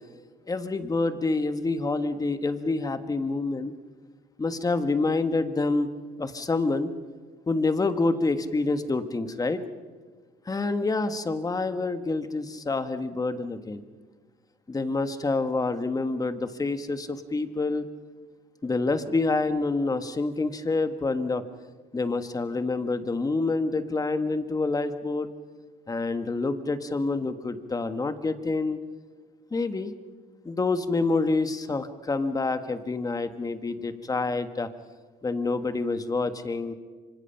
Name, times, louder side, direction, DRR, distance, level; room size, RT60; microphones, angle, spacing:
voice 1, 0.5-3.7 4.4-5.9 6.2-6.9 7.5-9.6 10.4-13.8 14.7-17.9 18.6-21.4 21.9-25.3 25.9-28.8 29.5-29.9 30.4-34.7 35.2-36.7, left 3 dB, 20° left, 9 dB, 1.5 m, -27 dB
25.5 x 25.0 x 5.9 m, 1.4 s
cardioid pair, 110°, 17 cm